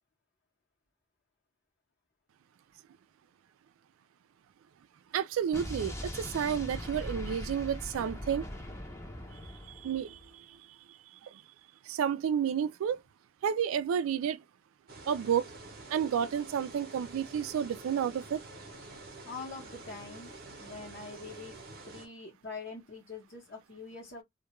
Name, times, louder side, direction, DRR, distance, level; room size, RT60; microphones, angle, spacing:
voice 1, 5.1-8.5 9.7-10.6 10.9-11.0 11.2-11.4 11.9-13.0 13.4-14.4 15.1-15.5 15.9-18.4, right 8 dB, 90° right, 0.3 m, -31 dB
Explosion, 5.5-10.3, left 1 dB, 15° left, 0.6 m, -41 dB
sound 1, 14.9-22.1, right 2 dB, 50° right, 0.7 m, -48 dB
voice 2, 19.2-21.6 21.9-24.2, left 4 dB, 50° left, 0.8 m, -44 dB
2.2 x 2.2 x 2.9 m
head